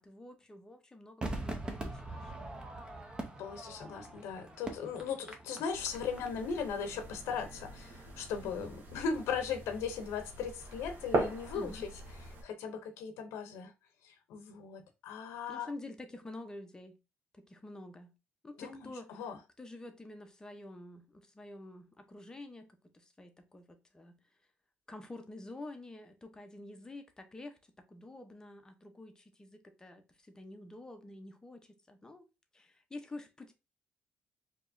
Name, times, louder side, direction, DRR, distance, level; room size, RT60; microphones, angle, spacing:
voice 1, 0.0-2.3 8.4-8.8 11.5-11.8 15.5-17.0 17.3-18.1 18.4-19.2 19.6-24.2 24.9-32.2 32.5-33.5, left 2 dB, 15° left, 0.7 m, -48 dB
Crowd / Fireworks, 1.2-6.6 6.9-7.0, right 2 dB, 20° right, 0.7 m, -42 dB
voice 2, 3.4-11.9 12.4-13.7 14.0-15.7 18.6-19.4, left 6 dB, 85° left, 0.6 m, -38 dB
sound 1, 5.7-12.4, right 3 dB, 50° right, 1.1 m, -40 dB
4.5 x 2.9 x 2.6 m
cardioid pair, 120°, 4 cm